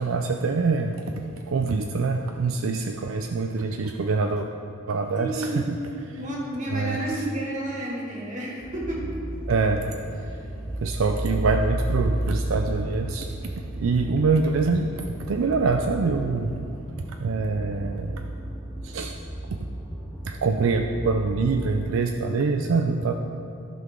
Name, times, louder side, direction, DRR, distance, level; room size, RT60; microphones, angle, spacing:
voice 1, 0.0-4.5 4.9-5.8 6.1-6.2 6.7-7.0 9.5-9.9 10.3-10.4 10.8-16.6 17.2-18.3 18.8-19.2 20.2-23.1, right 4 dB, 75° right, 4 dB, 0.4 m, -25 dB
voice 2, 5.2-5.7 6.1-9.1, right 1 dB, 40° right, -3 dB, 1.9 m, -31 dB
sound 1, 8.6-21.7, right 1 dB, ahead, 1.5 m, -33 dB
14.0 x 5.8 x 3.7 m, 2.6 s
head